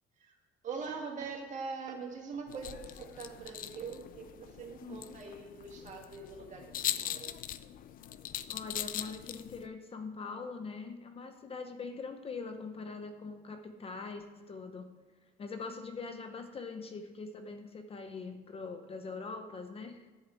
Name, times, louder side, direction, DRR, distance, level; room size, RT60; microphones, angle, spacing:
voice 1, 0.6-7.4, right 5 dB, 45° right, 1 dB, 2.1 m, -43 dB
sound 1, 2.5-9.7, left 11 dB, 55° left, 0.5 m, -41 dB
voice 2, 4.8-5.2 8.5-14.9 15.4-20.1, left 4 dB, 35° left, 7 dB, 0.8 m, -43 dB
11.0 x 4.8 x 7.7 m, 1.4 s
cardioid pair, 110°, 17 cm